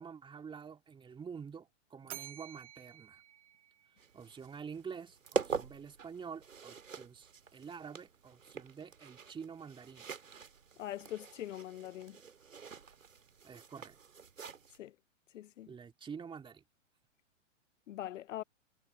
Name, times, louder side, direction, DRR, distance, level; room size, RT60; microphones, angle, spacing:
voice 1, 0.0-3.2 4.1-10.1 13.4-14.0 15.7-16.6, right 6 dB, 15° right, 2.3 m, -47 dB
Bell, 2.1-4.4, right 12 dB, 60° right, 1.1 m, -51 dB
sound 1, 4.0-14.8, right 5 dB, 85° right, 2.1 m, -44 dB
voice 2, 10.8-12.2 14.8-14.9 15.3-15.7 17.9-18.4, left 13 dB, 75° left, 0.5 m, -42 dB
hypercardioid pair, 120°, 38 cm